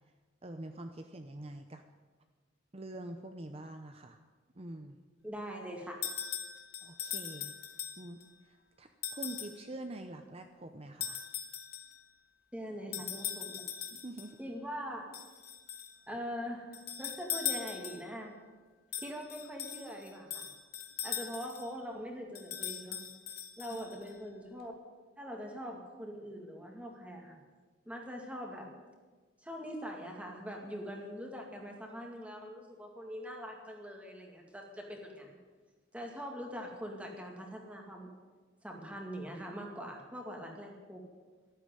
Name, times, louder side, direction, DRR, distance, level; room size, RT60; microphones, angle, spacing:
voice 1, 0.4-1.8 2.7-4.2 4.5-5.0 6.8-7.5 8.0-11.2 13.9-14.4 23.7-23.8, right 1 dB, 30° right, 6 dB, 0.8 m, -45 dB
voice 2, 5.2-6.0 12.5-13.7 14.4-15.1 16.1-18.3 19.0-20.5 21.0-23.1 23.6-24.7 25.2-27.4 27.9-28.7 29.4-35.4 35.9-38.1 38.6-41.0, equal, 5° right, 0 dB, 2.2 m, -43 dB
sound 1, 6.0-8.3 9.0-9.6 11.0-12.0 12.9-14.3 15.1-16.0 16.7-18.2 18.9-21.7 22.4-24.1, left 9 dB, 50° left, 1.7 m, -40 dB
13.0 x 12.0 x 9.0 m, 1.4 s
head